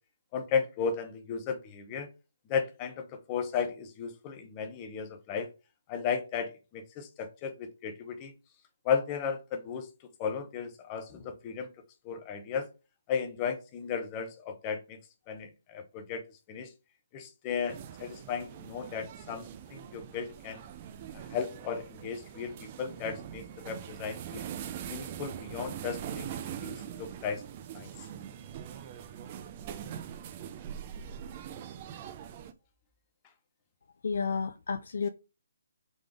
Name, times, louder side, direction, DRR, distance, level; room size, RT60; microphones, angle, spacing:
voice 1, 0.3-2.1 2.5-5.5 5.9-8.3 8.8-9.9 10.2-11.7 12.0-12.7 13.1-15.0 15.3-16.2 16.5-16.7 17.1-20.6 21.1-24.5 24.9-27.4 27.7-27.9, left 6 dB, 25° left, 0.8 m, -35 dB
sound 1, 17.7-32.5, right 9 dB, 30° right, 0.5 m, -42 dB
voice 2, 34.0-35.1, left 5 dB, 70° left, 0.4 m, -31 dB
3.9 x 3.2 x 3.6 m
hypercardioid pair, 155°, 0 cm